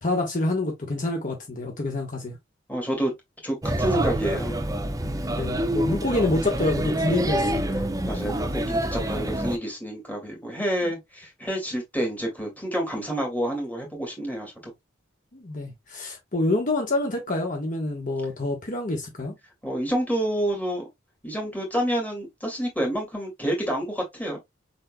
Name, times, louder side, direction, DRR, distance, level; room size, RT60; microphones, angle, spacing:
voice 1, 0.0-2.4 5.3-7.9 10.8-10.9 15.3-19.3, left 2 dB, 45° left, 1.2 m, -27 dB
voice 2, 2.7-3.1 3.4-4.6 8.1-14.7 19.6-20.8 21.2-24.4, right 1 dB, 10° left, 2.2 m, -28 dB
Male speech man speaking / Child speech kid speaking / Chatter, 3.6-9.6, right 1 dB, 20° right, 0.6 m, -27 dB
5.2 x 4.2 x 2.2 m
head